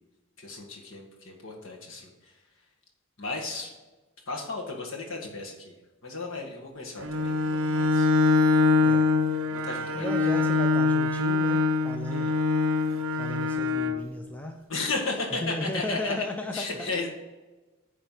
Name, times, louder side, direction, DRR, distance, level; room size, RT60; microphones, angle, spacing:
voice 1, 0.4-2.1 3.2-3.7 4.3-5.7 6.0-8.1 9.5-10.4 12.1-12.3 14.7-16.1 16.5-17.1, left 3 dB, 65° left, 0 dB, 1.7 m, -34 dB
Bowed string instrument, 7.0-14.1, left 3 dB, 65° right, 0.6 m, -24 dB
voice 2, 8.8-9.1 9.9-12.3 12.7-12.8 13.2-14.6 15.4-16.7, left 1 dB, 5° left, 3 dB, 0.4 m, -35 dB
9.9 x 3.4 x 5.7 m, 1.2 s
head